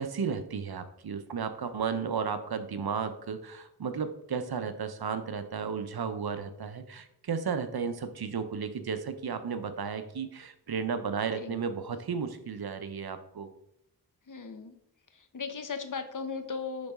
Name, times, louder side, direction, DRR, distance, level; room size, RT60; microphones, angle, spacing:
voice 1, 0.0-13.5, right 6 dB, 60° right, 10 dB, 0.7 m, -34 dB
voice 2, 14.3-14.8 15.1-16.9, left 5 dB, 50° left, 9 dB, 0.8 m, -37 dB
10.0 x 4.0 x 3.5 m, 0.78 s
cardioid pair, 50°, 41 cm